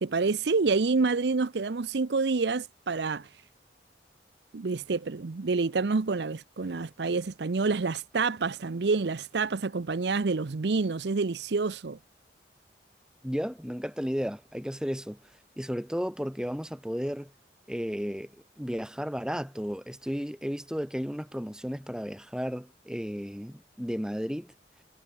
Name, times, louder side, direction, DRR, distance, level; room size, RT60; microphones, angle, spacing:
voice 1, 0.0-3.3 4.5-12.0, right 4 dB, 80° right, 0.6 m, -28 dB
voice 2, 13.2-15.2 15.6-17.3 17.7-18.3 18.6-24.5, equal, 5° right, 1.9 m, -33 dB
head